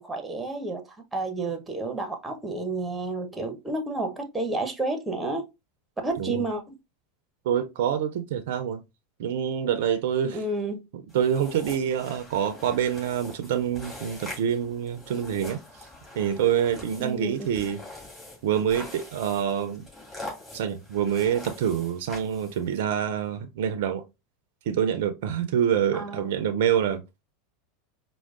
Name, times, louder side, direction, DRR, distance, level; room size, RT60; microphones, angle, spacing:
voice 1, 0.0-5.5 6.0-6.8 10.3-10.9 17.0-17.4 25.9-26.3, right 2 dB, 10° right, 0.7 m, -31 dB
voice 2, 7.5-8.8 9.2-10.4 11.1-15.6 16.2-17.8 18.4-19.9 20.5-24.0 24.7-27.0, right 9 dB, 65° right, 0.4 m, -26 dB
sound 1, 11.1-22.8, left 1 dB, 15° left, 2.1 m, -44 dB
4.5 x 2.0 x 2.3 m
hypercardioid pair, 90°, 0 cm